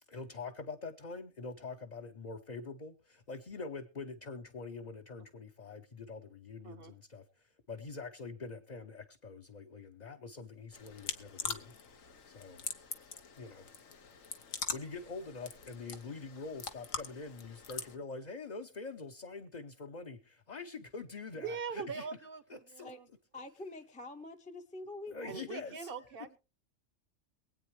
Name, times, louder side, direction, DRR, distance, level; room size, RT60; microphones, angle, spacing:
voice 1, 0.1-11.7 12.3-12.6 13.4-13.7 14.3-22.1 22.5-22.9 25.1-25.9, left 4 dB, 40° left, 3 dB, 0.9 m, -45 dB
voice 2, 6.6-6.9 21.3-23.1 25.2-26.4, right 6 dB, 50° right, 13 dB, 1.0 m, -42 dB
sound 1, 10.7-18.0, left 6 dB, 80° left, 1.5 m, -43 dB
voice 3, 23.3-25.5, left 2 dB, 5° left, 4 dB, 0.7 m, -46 dB
23.5 x 8.8 x 3.2 m, 0.33 s
omnidirectional pair, 1.3 m